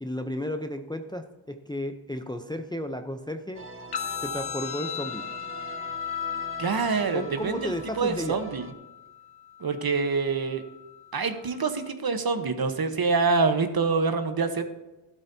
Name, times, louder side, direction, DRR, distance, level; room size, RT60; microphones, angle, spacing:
voice 1, 0.0-3.7 4.2-5.2 7.1-8.4, left 1 dB, 10° left, 6 dB, 0.7 m, -33 dB
sound 1, 3.5-8.7, right 5 dB, 25° right, 0.8 m, -43 dB
sound 2, 3.9-11.9, left 10 dB, 50° left, 1.1 m, -37 dB
voice 2, 6.6-8.7 9.6-10.6 11.1-14.7, right 4 dB, 45° right, 8 dB, 1.2 m, -26 dB
12.0 x 12.0 x 2.8 m, 1.1 s
cardioid pair, 70°, 49 cm